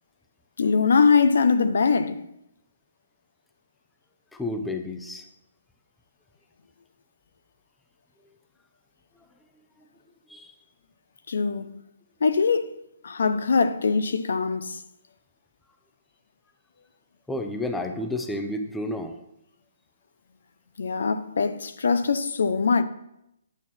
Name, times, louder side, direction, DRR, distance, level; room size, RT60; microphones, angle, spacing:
voice 1, 0.6-2.2 11.3-11.8 12.2-12.7 13.0-14.8 20.8-22.8, left 5 dB, 75° left, 0.6 m, -22 dB
voice 2, 4.3-5.3 10.3-10.5 17.3-19.1, left 1 dB, 5° left, 0.6 m, -31 dB
9.2 x 5.9 x 4.3 m
hypercardioid pair, 155°, 0 cm